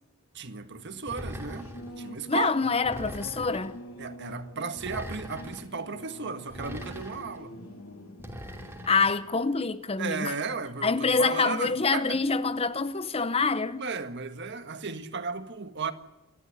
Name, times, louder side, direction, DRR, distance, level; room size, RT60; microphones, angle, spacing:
voice 1, 0.3-1.7 2.0-2.7 4.0-7.6 10.0-12.2 13.8-15.9, right 4 dB, 55° right, 1.7 m, -35 dB
Singing / Musical instrument, 0.8-10.9, equal, 85° left, 2.7 m, -46 dB
sound 1, 1.1-1.9 2.8-3.8 4.8-5.7 6.5-7.4 8.2-9.2, equal, 10° right, 2.9 m, -41 dB
voice 2, 2.3-3.8 8.9-10.3 10.8-13.8, left 4 dB, 30° left, 0.8 m, -26 dB
28.0 x 12.5 x 9.8 m
head